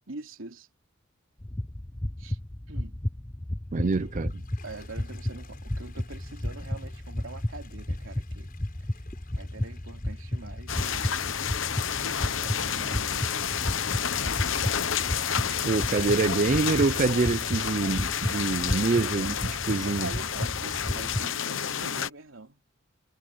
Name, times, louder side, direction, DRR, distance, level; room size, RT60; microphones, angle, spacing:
voice 1, 0.1-0.7 2.2-2.4 2.7-3.0 3.8-4.1 4.6-8.5 9.4-11.1 12.2-13.6 19.0-22.7, right 3 dB, 85° right, 2.9 m, -44 dB
sound 1, 1.4-21.3, left 1 dB, 15° left, 0.8 m, -33 dB
Toilet flush, 3.5-13.8, left 7 dB, 45° left, 6.1 m, -58 dB
voice 2, 3.7-4.3 15.5-20.1, right 3 dB, 40° right, 0.4 m, -26 dB
sound 2, 10.7-22.1, left 8 dB, 70° left, 1.0 m, -30 dB
head